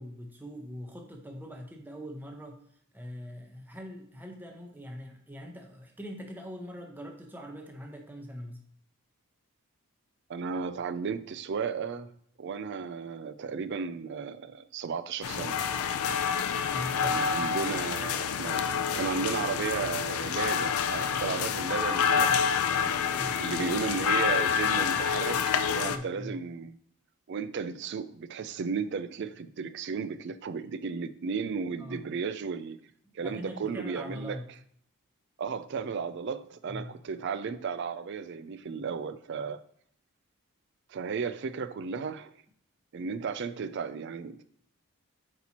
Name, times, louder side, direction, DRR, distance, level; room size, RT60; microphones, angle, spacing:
voice 1, 0.0-2.6 2.9-8.6 16.7-17.2 22.1-22.4 23.0-23.3 25.8-26.4 31.8-32.0 33.2-34.4 36.7-36.9, equal, 10° right, 0.7 m, -42 dB
voice 2, 10.3-12.1 12.4-15.6 17.0-18.7 18.9-22.3 22.8-26.8 27.3-32.8 33.1-34.4 35.4-39.6 40.9-42.3 42.9-44.4, right 5 dB, 50° right, 0.4 m, -34 dB
sound 1, 15.2-26.0, left 7 dB, 75° left, 0.4 m, -28 dB
8.6 x 4.2 x 2.8 m
head